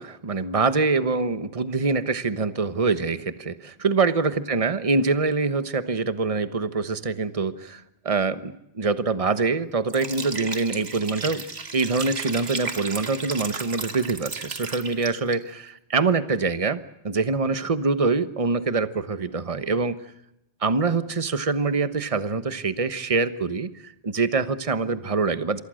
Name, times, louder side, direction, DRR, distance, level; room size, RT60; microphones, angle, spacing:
voice 1, 0.0-11.4 11.7-19.9 20.6-25.6, right 4 dB, 35° right, 12 dB, 1.2 m, -25 dB
Liquid, 9.9-15.3, right 3 dB, 80° right, 2.4 m, -34 dB
27.5 x 23.5 x 6.4 m, 0.84 s
omnidirectional pair, 1.1 m